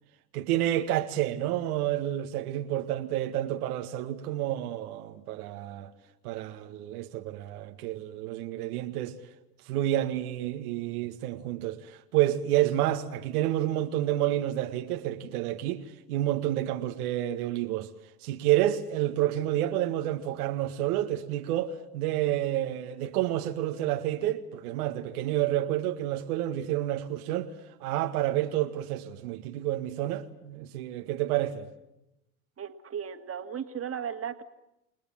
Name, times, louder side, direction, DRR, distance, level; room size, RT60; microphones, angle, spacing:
voice 1, 0.3-5.9 6.2-9.1 9.7-15.8 16.1-17.9 18.2-27.5 27.8-31.7, right 13 dB, 70° right, 1.9 m, -29 dB
voice 2, 32.6-34.4, right 8 dB, 30° right, 2.4 m, -36 dB
29.5 x 21.0 x 7.6 m
hypercardioid pair, 80°, 46 cm